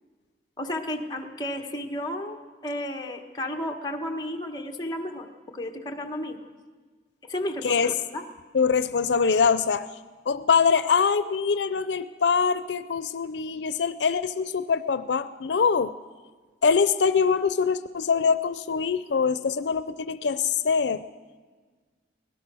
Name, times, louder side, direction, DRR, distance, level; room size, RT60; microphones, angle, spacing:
voice 1, 0.6-5.3 5.5-6.4 7.2-8.2, left 1 dB, 25° left, 3 dB, 1.4 m, -33 dB
voice 2, 8.5-9.9 10.3-15.9 16.6-21.0, left 5 dB, 85° left, 13 dB, 0.5 m, -23 dB
24.0 x 18.0 x 6.3 m, 1.5 s
head